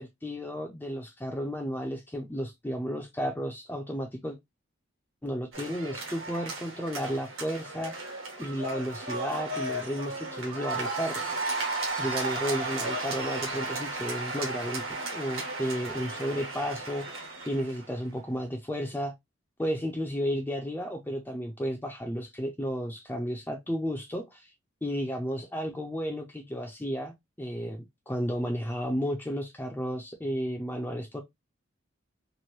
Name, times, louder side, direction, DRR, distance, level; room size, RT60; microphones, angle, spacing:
voice 1, 0.0-4.4 5.2-7.9 8.4-11.2 12.0-14.8 15.1-19.1 19.6-24.5 24.8-31.2, equal, 10° left, 0.4 m, -33 dB
sound 1, 5.5-17.9, right 2 dB, 75° right, 1.2 m, -34 dB
3.0 x 2.6 x 2.9 m
head